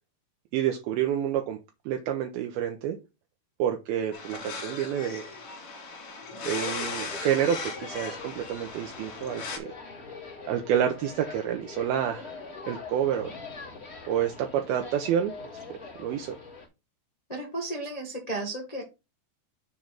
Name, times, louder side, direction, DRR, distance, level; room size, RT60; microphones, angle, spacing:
voice 1, 0.5-1.6 1.9-3.0 3.6-5.3 6.5-9.7 10.5-12.4 12.7-13.3 14.1-15.3 15.7-16.4, right 9 dB, 80° right, 4 dB, 2.4 m, -28 dB
sound 1, 4.1-9.6, left 4 dB, 50° left, 2.9 m, -38 dB
sound 2, 6.4-16.7, left 4 dB, 30° left, 1.2 m, -43 dB
voice 2, 17.3-18.8, right 2 dB, 85° left, -1 dB, 0.3 m, -34 dB
7.3 x 3.8 x 5.9 m, 0.27 s
omnidirectional pair, 4.9 m